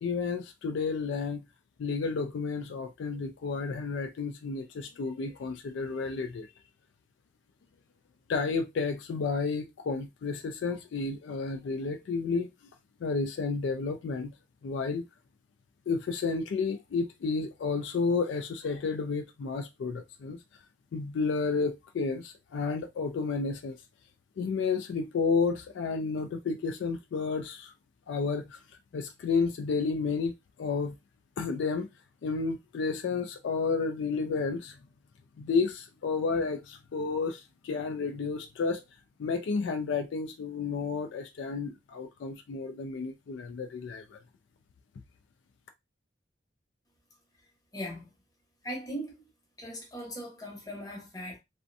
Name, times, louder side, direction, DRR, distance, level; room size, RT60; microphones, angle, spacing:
voice 1, 0.0-1.4 1.8-6.5 8.3-12.5 13.0-14.3 14.6-15.1 15.9-20.4 20.9-23.8 24.4-27.7 28.1-28.6 28.9-31.0 31.4-31.9 32.2-34.8 35.4-38.8 39.2-44.2, left 4 dB, 75° left, 0.3 m, -31 dB
voice 2, 47.7-48.1 48.6-49.2 49.6-51.4, equal, 20° left, 0.8 m, -39 dB
2.5 x 2.1 x 2.6 m
head